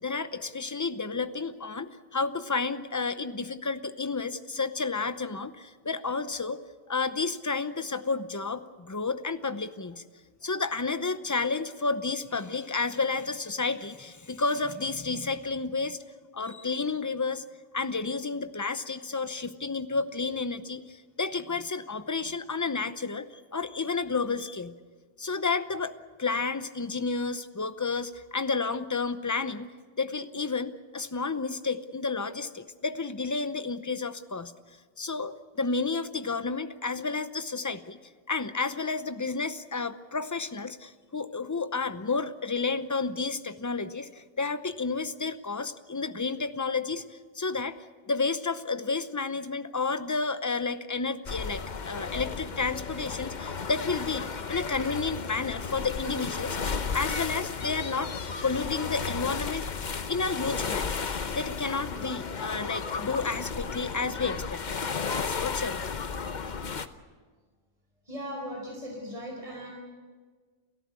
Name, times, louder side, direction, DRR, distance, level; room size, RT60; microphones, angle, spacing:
voice 1, 0.0-10.0 10.4-16.0 16.3-17.4 17.7-23.3 23.5-24.8 25.2-25.9 26.2-29.7 30.0-34.5 35.0-38.0 38.3-47.8 48.1-56.6 56.9-58.1 58.4-59.7 60.1-64.8 65.2-65.9, left 4 dB, 20° left, 11 dB, 0.7 m, -31 dB
sound 1, 51.2-66.9, left 5 dB, 45° left, 0.9 m, -34 dB
voice 2, 68.0-69.7, equal, 30° right, -1 dB, 4.9 m, -38 dB
29.5 x 14.0 x 8.3 m, 1.5 s
omnidirectional pair, 1.2 m